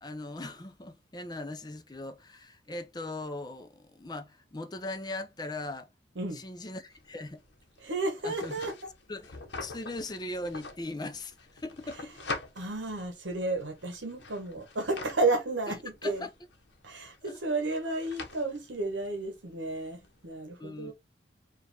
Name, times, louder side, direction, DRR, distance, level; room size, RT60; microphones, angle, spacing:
voice 1, 0.0-5.9 6.3-7.4 8.2-8.5 9.1-12.1 16.0-16.3 17.2-17.4 20.6-20.9, left 2 dB, 20° left, 0.5 m, -39 dB
sound 1, 6.9-20.3, left 3 dB, 65° left, 1.0 m, -46 dB
voice 2, 7.8-8.7 12.6-16.3 16.8-20.9, right 2 dB, 70° right, 1.1 m, -32 dB
4.8 x 2.5 x 3.3 m
head